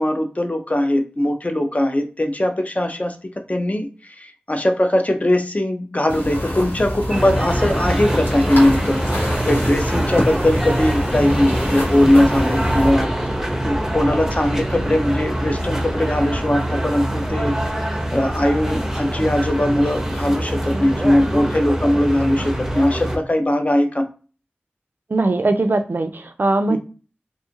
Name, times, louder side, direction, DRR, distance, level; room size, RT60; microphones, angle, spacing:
voice 1, 0.0-9.0 9.4-13.1 13.6-17.6 18.1-24.1 26.7-26.8, left 1 dB, 35° left, 5 dB, 0.5 m, -20 dB
sound 1, 6.1-12.9, equal, 75° left, 1.1 m, -26 dB
sound 2, 7.1-23.2, right 1 dB, 10° right, 0.6 m, -24 dB
voice 2, 25.1-26.8, right 2 dB, 60° right, 8 dB, 0.3 m, -20 dB
2.5 x 2.4 x 2.8 m, 0.35 s
wide cardioid pair, 45°, 4 cm